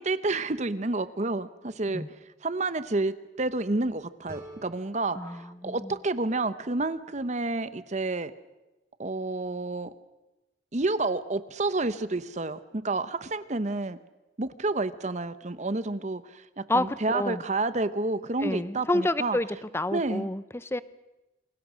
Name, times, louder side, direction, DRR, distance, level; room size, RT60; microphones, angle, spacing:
voice 1, 0.0-2.0 2.4-8.3 9.0-9.9 10.7-14.0 14.4-19.4 19.9-20.3, right 2 dB, 40° right, 13 dB, 0.9 m, -29 dB
sound 1, 4.3-7.1, right 1 dB, 15° right, 6.2 m, -51 dB
voice 2, 5.2-5.9 16.7-17.4 18.4-20.8, left 1 dB, 15° left, 15 dB, 0.8 m, -29 dB
28.0 x 26.5 x 6.3 m, 1.0 s
head